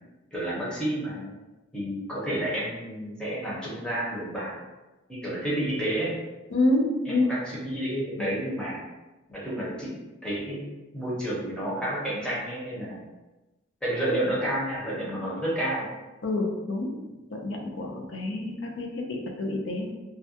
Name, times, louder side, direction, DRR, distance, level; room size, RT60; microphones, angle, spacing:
voice 1, 0.3-1.3 1.7-4.6 5.1-6.1 7.1-8.8 9.3-10.0 10.2-10.6 10.9-13.0 13.8-15.8, right 1 dB, 5° left, -8 dB, 0.7 m, -30 dB
voice 2, 6.5-7.3 16.2-17.0 17.3-20.0, left 2 dB, 65° left, 1 dB, 0.5 m, -27 dB
2.3 x 2.1 x 2.7 m, 1.1 s
head